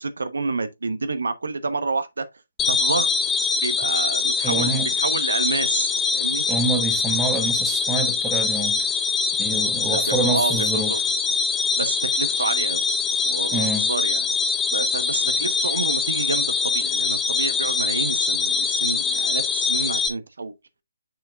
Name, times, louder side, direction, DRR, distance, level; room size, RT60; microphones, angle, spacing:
voice 1, 0.0-2.3 2.7-3.1 3.6-6.4 9.9-11.0 11.8-12.8 13.2-14.3 14.7-20.5, right 3 dB, 70° right, 1.0 m, -28 dB
sound 1, 2.6-20.1, left 5 dB, 10° left, 0.6 m, -23 dB
voice 2, 4.4-4.9 6.5-8.8 9.4-10.9 13.5-13.9, right 3 dB, 10° right, 1.2 m, -26 dB
6.6 x 6.3 x 2.4 m
figure-of-eight pair, 145°, 0 cm